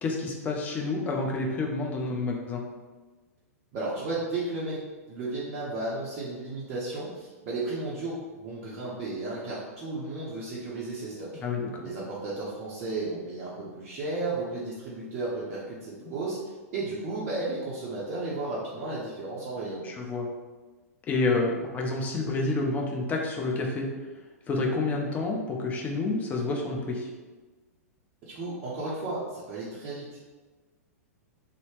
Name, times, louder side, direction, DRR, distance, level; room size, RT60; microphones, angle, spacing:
voice 1, 0.0-2.6 11.4-11.9 19.8-20.3 21.1-23.9 24.5-27.1, left 3 dB, 20° left, 0 dB, 0.4 m, -29 dB
voice 2, 3.7-11.4 11.8-19.9 28.2-30.3, right 2 dB, 35° right, -7 dB, 0.5 m, -34 dB
2.7 x 2.0 x 3.0 m, 1.3 s
figure-of-eight pair, 105°, 9 cm